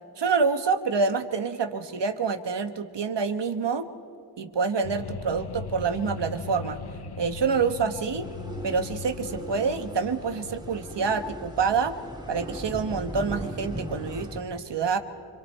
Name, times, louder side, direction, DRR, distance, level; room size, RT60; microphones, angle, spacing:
voice 1, 0.2-3.9 4.4-6.8 7.2-8.3 8.6-12.0 12.3-15.0, right 5 dB, 80° right, 7 dB, 1.2 m, -27 dB
sound 1, 4.8-11.0, left 5 dB, 65° left, 0.8 m, -39 dB
sound 2, 8.2-14.4, equal, 10° right, 2.0 m, -38 dB
25.5 x 25.5 x 4.4 m, 2.4 s
wide cardioid pair, 60°, 42 cm